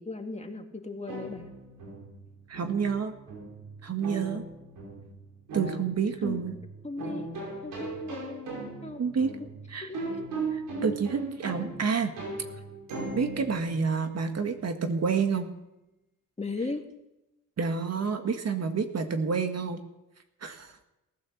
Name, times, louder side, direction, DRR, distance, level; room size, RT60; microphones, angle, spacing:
voice 1, 0.0-1.5 6.2-6.4 6.8-7.3 7.6-8.5 8.8-9.5 9.8-10.3 16.4-16.9, left 3 dB, 20° left, 4 dB, 2.2 m, -37 dB
sound 1, 1.1-14.7, right 3 dB, 85° right, 5.2 m, -38 dB
voice 2, 2.5-3.1 3.8-4.5 5.5-6.5 9.0-9.4 9.7-9.9 10.8-12.1 13.1-15.5 17.6-19.8 20.4-20.7, right 5 dB, 50° right, 7 dB, 1.8 m, -29 dB
18.0 x 9.4 x 7.4 m, 0.94 s
cardioid pair, 70°, 32 cm